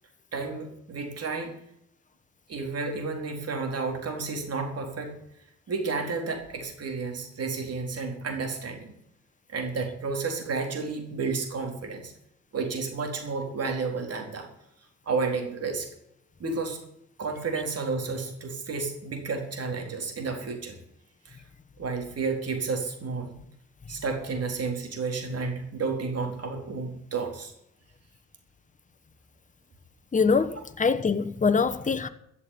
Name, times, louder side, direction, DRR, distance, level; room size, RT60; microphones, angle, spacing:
voice 1, 0.3-1.5 2.5-5.1 5.7-8.9 9.5-12.1 12.5-14.5 15.1-15.9 16.4-16.8 17.2-20.8 21.2-21.4 21.8-23.3 23.9-27.5, right 4 dB, 55° right, 4.1 m, -31 dB
voice 2, 30.1-32.1, left 5 dB, 25° left, 1.2 m, -24 dB
14.5 x 7.1 x 9.7 m
cardioid pair, 90°, 30 cm